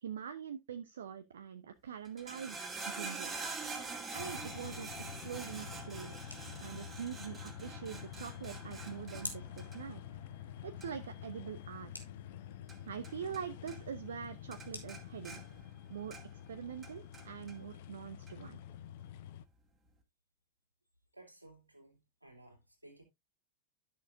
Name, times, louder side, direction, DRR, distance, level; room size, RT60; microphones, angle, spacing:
voice 1, 0.0-2.6 2.9-3.3 3.9-4.9 5.2-10.0 10.6-12.1 12.8-15.4 15.9-16.2 16.5-18.6, right 8 dB, 65° right, 0.7 m, -44 dB
sound 1, 2.0-13.4 13.7-14.2 14.5-16.5 16.8-17.6 18.3-18.4, right 4 dB, 15° right, 2.3 m, -46 dB
sound 2, 3.3-15.7, left 1 dB, 90° left, 2.3 m, -54 dB
sound 3, 4.2-19.5, left 11 dB, 50° left, 0.7 m, -48 dB
voice 2, 21.1-23.0, right 2 dB, 85° right, 2.8 m, -57 dB
12.5 x 6.7 x 2.6 m
figure-of-eight pair, 90°, 0 cm